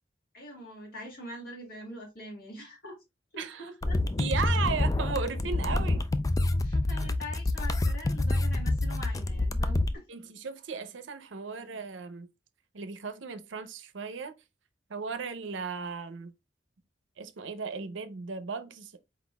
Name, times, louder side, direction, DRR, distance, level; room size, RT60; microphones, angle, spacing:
voice 1, 0.3-3.0 3.3-4.0 6.6-10.0, equal, 55° left, 1.8 m, -44 dB
voice 2, 3.4-3.7 4.2-6.0 6.5-7.1 10.1-12.3 12.7-14.3 14.9-16.3 17.2-18.9, right 5 dB, 85° right, 0.6 m, -36 dB
sound 1, 3.8-9.9, left 2 dB, 20° left, 0.3 m, -27 dB
4.4 x 4.0 x 2.2 m
head